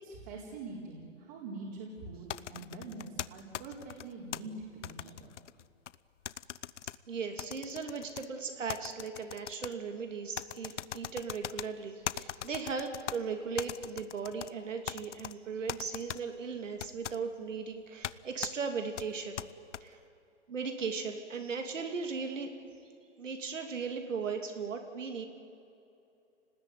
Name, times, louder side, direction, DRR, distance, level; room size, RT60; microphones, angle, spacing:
voice 1, 0.0-4.5 4.8-5.3, right 3 dB, 35° right, -3 dB, 4.3 m, -44 dB
sound 1, 2.3-4.4 4.8-6.0 6.3-7.0 7.4-8.3 8.7-9.7 10.4-11.7 12.1-13.2 13.6-14.5 14.9-15.3 15.7-16.2 16.8-17.2 18.0-18.1 18.4-18.5 19.0-19.8, left 10 dB, 75° left, 0.8 m, -40 dB
voice 2, 7.1-19.5 19.8-20.0 20.5-22.5 23.2-25.3, right 5 dB, 90° right, 5 dB, 2.9 m, -37 dB
27.5 x 19.5 x 9.5 m, 2.8 s
hypercardioid pair, 155°, 37 cm